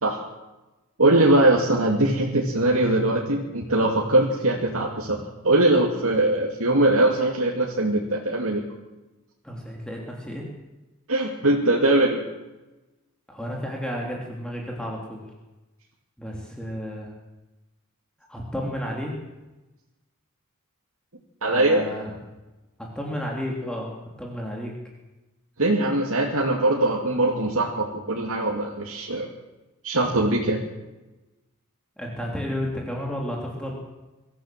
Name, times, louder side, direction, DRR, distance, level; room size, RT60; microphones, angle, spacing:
voice 1, 1.0-5.2 5.4-8.6 11.1-12.2 21.4-21.8 25.6-29.3 29.8-30.6, right 2 dB, 75° right, -1 dB, 2.6 m, -21 dB
voice 2, 9.4-10.5 13.3-15.2 16.2-17.1 18.3-19.2 21.4-22.1 22.9-23.9 24.2-24.7 32.0-33.8, equal, 5° left, -2 dB, 3.2 m, -32 dB
24.5 x 14.5 x 7.7 m, 1.1 s
head